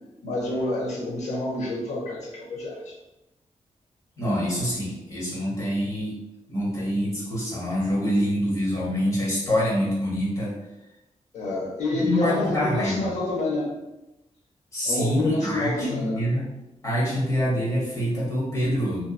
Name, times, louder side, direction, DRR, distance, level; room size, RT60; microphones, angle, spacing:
voice 1, 0.2-3.0 11.3-13.7 14.8-16.2, left 2 dB, 70° left, -2 dB, 0.7 m, -28 dB
voice 2, 4.2-6.1 6.5-10.5 11.9-13.2 14.7-16.5 16.8-19.1, equal, 25° left, -7 dB, 1.1 m, -26 dB
2.8 x 2.3 x 2.3 m, 0.97 s
wide cardioid pair, 160°, 12 cm